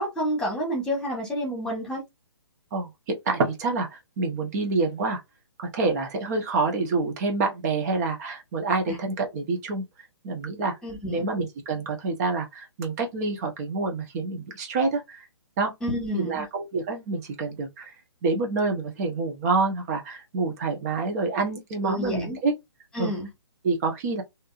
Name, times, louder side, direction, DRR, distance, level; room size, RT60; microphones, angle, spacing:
voice 1, 0.0-2.0 8.9-9.0 10.8-11.3 15.8-16.4 21.8-22.4 22.9-23.3, equal, 5° left, 1.6 m, -29 dB
voice 2, 2.7-5.2 5.6-9.8 10.2-10.8 11.1-15.3 15.6-15.7 16.1-17.9 18.2-22.5 23.0-23.1 23.6-24.2, right 3 dB, 35° right, 1.1 m, -27 dB
3.4 x 2.9 x 2.5 m
figure-of-eight pair, 135°, 15 cm